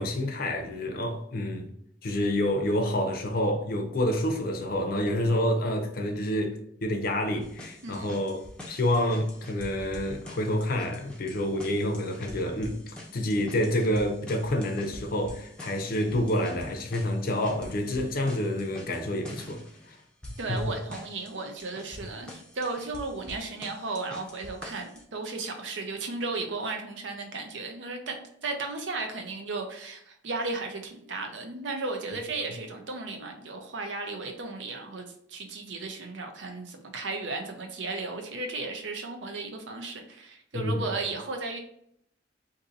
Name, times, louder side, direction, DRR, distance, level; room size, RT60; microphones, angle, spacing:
voice 1, 0.0-1.7 2.0-20.0 20.5-20.6 40.5-40.9, left 1 dB, 50° left, 0.5 m, -28 dB
sound 1, 7.4-25.0, left 1 dB, 5° left, 0.5 m, -46 dB
voice 2, 7.8-8.1 20.4-41.6, right 3 dB, 80° right, 0.6 m, -35 dB
2.6 x 2.6 x 3.9 m
head